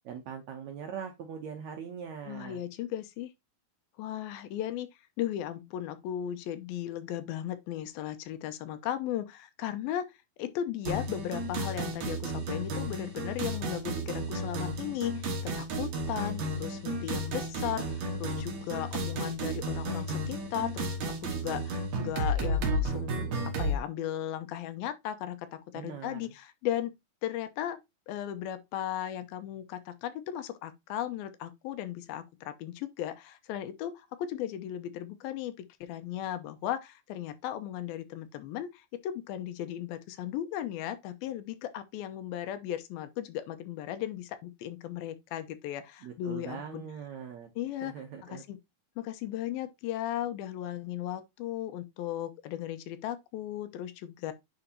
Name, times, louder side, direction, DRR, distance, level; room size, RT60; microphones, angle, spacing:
voice 1, 0.1-2.6 25.7-26.3 46.0-47.5 47.8-48.4, right 7 dB, 75° right, 1.7 m, -41 dB
voice 2, 2.2-3.3 4.0-4.9 5.2-26.9 27.2-27.8 28.1-46.8 47.6-47.9 48.2-48.6 49.0-54.3, left 11 dB, 90° left, 2.6 m, -36 dB
sound 1, 10.8-23.8, right 1 dB, 60° right, 2.6 m, -33 dB
9.5 x 3.9 x 2.8 m
omnidirectional pair, 4.2 m